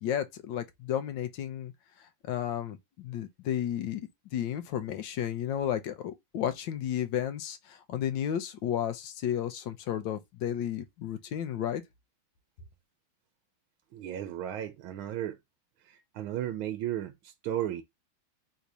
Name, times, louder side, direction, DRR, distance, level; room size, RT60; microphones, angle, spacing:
voice 1, 0.0-1.7 2.2-11.8, left 10 dB, 70° left, 1.4 m, -33 dB
voice 2, 13.9-15.4 15.8-17.8, right 11 dB, 90° right, 1.5 m, -34 dB
4.0 x 2.7 x 4.7 m
omnidirectional pair, 2.2 m